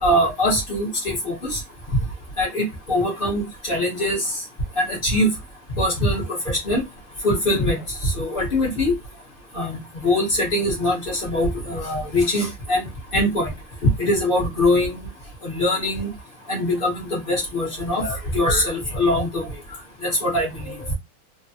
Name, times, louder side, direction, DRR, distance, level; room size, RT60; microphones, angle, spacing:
voice 1, 0.0-1.6 2.4-4.2 4.8-5.3 5.8-6.8 7.2-8.9 9.5-12.9 13.1-13.5 14.0-15.0 15.4-16.1 16.5-19.5 20.0-20.8, left 1 dB, 40° left, 0.8 m, -22 dB
3.3 x 2.1 x 2.6 m
omnidirectional pair, 2.2 m